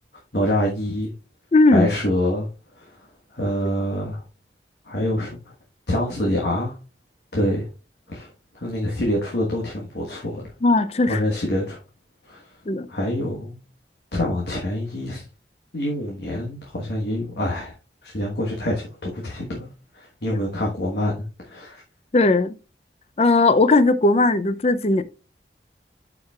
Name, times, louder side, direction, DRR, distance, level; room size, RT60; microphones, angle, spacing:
voice 1, 0.3-1.1 1.7-2.5 2.8-3.0 3.3-4.2 4.8-5.5 5.9-6.8 7.3-7.7 8.1-10.4 11.1-11.8 12.3-12.4 12.9-13.6 14.1-15.2 15.7-17.7 18.0-19.7 19.9-21.8, left 1 dB, 70° left, 1.3 m, -26 dB
voice 2, 1.5-1.9 10.6-11.2 12.7-12.9 22.1-22.5 23.2-25.0, left 2 dB, 35° left, 0.4 m, -17 dB
12.0 x 4.9 x 2.3 m
head